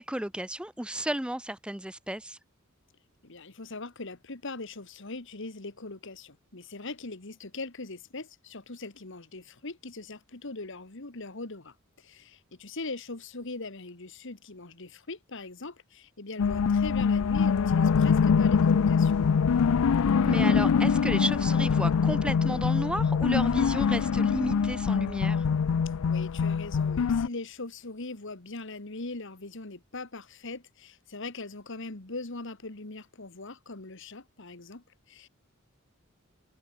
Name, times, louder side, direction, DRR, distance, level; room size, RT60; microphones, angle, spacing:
voice 1, 0.0-2.4 20.2-25.5, right 1 dB, 5° right, 0.8 m, -33 dB
voice 2, 3.2-19.2 26.1-35.3, left 3 dB, 60° left, 2.0 m, -40 dB
sound 1, 16.4-27.3, left 6 dB, 85° left, 0.4 m, -24 dB
head